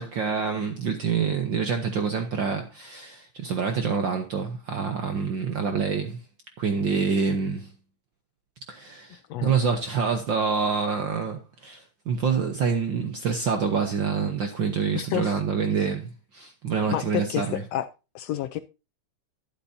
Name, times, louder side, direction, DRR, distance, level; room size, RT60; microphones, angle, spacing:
voice 1, 0.0-6.3 6.6-7.7 8.7-17.6, right 5 dB, 60° right, 1.2 m, -27 dB
voice 2, 14.9-15.4 16.9-17.9 18.1-18.6, left 12 dB, 75° left, 1.6 m, -29 dB
12.0 x 10.0 x 2.7 m
omnidirectional pair, 3.3 m